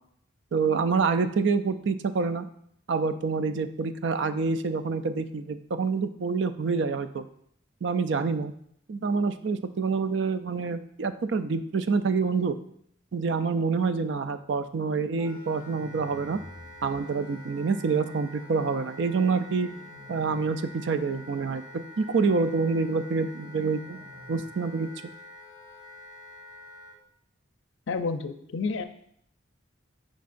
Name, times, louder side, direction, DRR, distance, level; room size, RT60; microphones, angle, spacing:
voice 1, 0.5-2.5 2.9-7.2 7.8-8.5 8.9-12.5 13.1-16.4 16.8-19.7 20.1-24.0 24.3-24.9, right 4 dB, 60° right, 11 dB, 0.4 m, -27 dB
Wind instrument woodwind instrument, 15.2-27.0, left 1 dB, 20° right, 1.0 m, -47 dB
sound 1, 15.6-17.0 19.3-20.4 20.8-21.5 23.2-24.4, equal, 35° right, 1.8 m, -50 dB
voice 2, 27.9-28.9, left 4 dB, 65° left, 9 dB, 0.5 m, -30 dB
9.2 x 5.2 x 2.5 m, 0.68 s
head